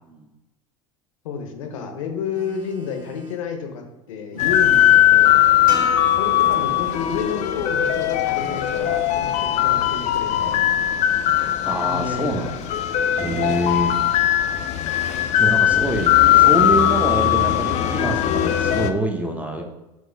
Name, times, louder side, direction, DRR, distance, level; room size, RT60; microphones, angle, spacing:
voice 1, 1.2-5.4 6.1-10.7 11.8-12.5 13.4-13.9 15.7-15.8 16.1-16.4, left 6 dB, 70° left, 4 dB, 0.7 m, -31 dB
Telephone, 2.3-3.5 4.3-5.5 6.3-7.5 8.3-9.5 10.3-11.5, right 8 dB, 80° right, 0.8 m, -43 dB
sound 1, 4.4-18.9, left 11 dB, 45° left, 0.4 m, -19 dB
voice 2, 5.6-5.9 11.6-12.6 13.1-14.0 15.4-19.7, right 1 dB, 10° right, 4 dB, 0.6 m, -25 dB
sound 2, 5.7-10.0, right 5 dB, 55° right, 1.3 m, -37 dB
4.6 x 2.4 x 3.3 m, 1.0 s
hypercardioid pair, 80°, 17 cm